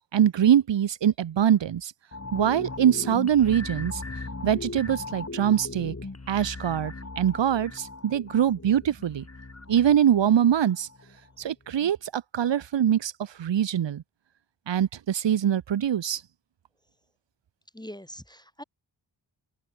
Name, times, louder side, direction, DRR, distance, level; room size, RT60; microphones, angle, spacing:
voice 1, 0.1-1.9 2.3-4.0 4.4-5.9 6.3-9.3 9.7-10.9 11.4-14.0 14.7-16.2, right 9 dB, 75° right, 0.8 m, -23 dB
sound 1, 2.1-11.4 11.8-11.9, left 3 dB, 35° left, 3.6 m, -39 dB
voice 2, 17.7-18.6, equal, 10° left, 1.6 m, -42 dB
wide cardioid pair, 65°, 44 cm